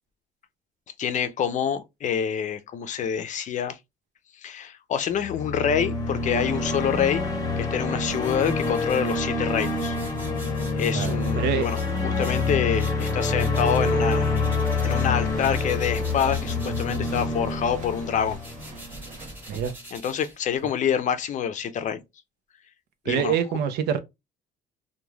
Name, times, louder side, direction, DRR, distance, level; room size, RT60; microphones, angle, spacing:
voice 1, 1.0-3.8 4.4-7.2 7.6-10.0 10.8-14.4 14.8-18.4 19.9-22.0 23.1-23.4, left 8 dB, 45° left, 0.5 m, -27 dB
sound 1, 5.1-19.3, left 3 dB, 20° left, 0.8 m, -27 dB
sound 2, 8.0-15.1 15.4-20.8, right 1 dB, 10° right, 1.3 m, -46 dB
voice 2, 10.9-11.7 19.5-19.7 23.1-24.0, right 8 dB, 80° right, 0.6 m, -25 dB
sound 3, 14.4-19.7, right 3 dB, 45° right, 0.9 m, -44 dB
3.1 x 2.2 x 2.2 m
cardioid pair, 110°, 17 cm